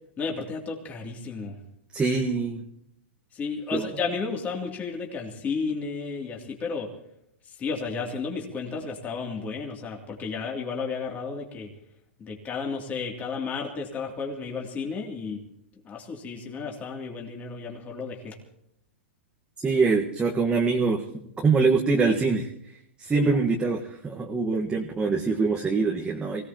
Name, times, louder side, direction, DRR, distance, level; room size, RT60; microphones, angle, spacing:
voice 1, 0.2-1.5 3.3-6.9 7.5-11.7 12.2-15.4 15.8-18.4, left 4 dB, 25° left, 0 dB, 2.9 m, -32 dB
voice 2, 1.9-2.6 3.7-3.8 19.6-21.0 21.4-22.5 23.0-26.4, right 4 dB, 15° right, 0 dB, 1.5 m, -24 dB
25.0 x 17.5 x 3.0 m, 0.77 s
hypercardioid pair, 125°, 7 cm